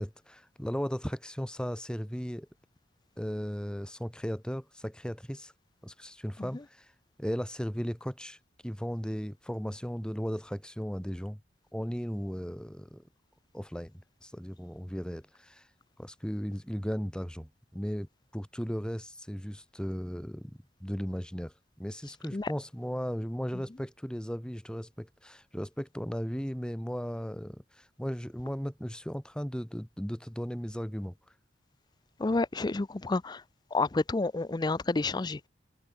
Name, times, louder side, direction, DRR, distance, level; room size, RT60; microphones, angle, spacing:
voice 1, 0.0-2.5 3.2-5.5 5.8-6.9 7.2-8.4 8.6-11.4 11.7-13.0 13.5-15.7 16.0-31.1, equal, 5° left, 2.9 m, -36 dB
voice 2, 32.2-33.4 33.7-35.5, left 3 dB, 25° left, 0.5 m, -29 dB
head